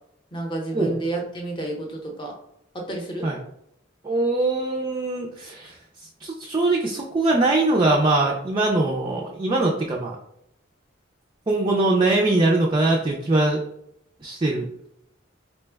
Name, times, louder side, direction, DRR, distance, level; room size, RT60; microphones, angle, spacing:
voice 1, 0.3-2.3 2.7-3.3, right 2 dB, 25° left, 0 dB, 0.7 m, -30 dB
voice 2, 4.0-10.2 11.5-13.6 14.2-14.7, right 2 dB, 25° right, -1 dB, 0.4 m, -22 dB
4.3 x 2.1 x 3.3 m, 0.77 s
head